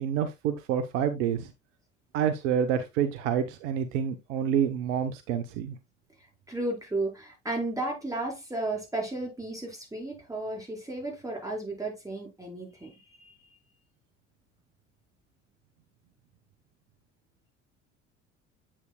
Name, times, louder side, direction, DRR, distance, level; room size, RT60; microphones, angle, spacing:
voice 1, 0.0-1.5 2.1-5.8, right 8 dB, 65° right, 0.9 m, -28 dB
voice 2, 6.2-13.3, right 2 dB, 10° right, 4.6 m, -34 dB
8.1 x 7.3 x 2.2 m
hypercardioid pair, 65°, 38 cm